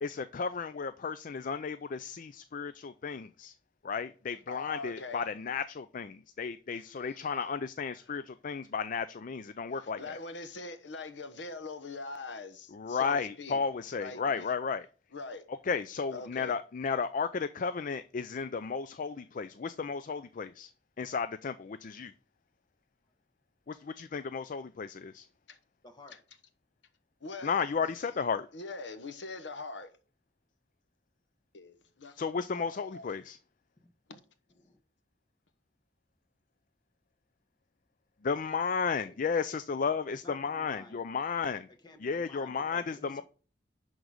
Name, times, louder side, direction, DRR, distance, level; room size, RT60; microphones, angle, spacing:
voice 1, 0.0-3.5 3.8-10.2 12.7-14.9 15.5-20.7 21.0-22.1 23.7-25.3 27.4-28.5 32.2-33.4 38.2-41.7 42.0-43.2, left 5 dB, 45° left, 0.4 m, -33 dB
voice 2, 4.5-5.2 7.0-7.2 9.7-13.6 13.9-14.5 15.1-15.4 16.1-16.5 25.5-25.6 27.2-27.5 28.5-29.9 31.5-32.2 32.5-33.1 34.1-34.2, left 3 dB, 75° left, 1.1 m, -42 dB
voice 3, 25.8-26.2 34.5-34.8 39.1-39.2 40.0-41.2 41.7-43.2, left 2 dB, 25° left, 1.4 m, -53 dB
11.0 x 3.9 x 6.4 m
head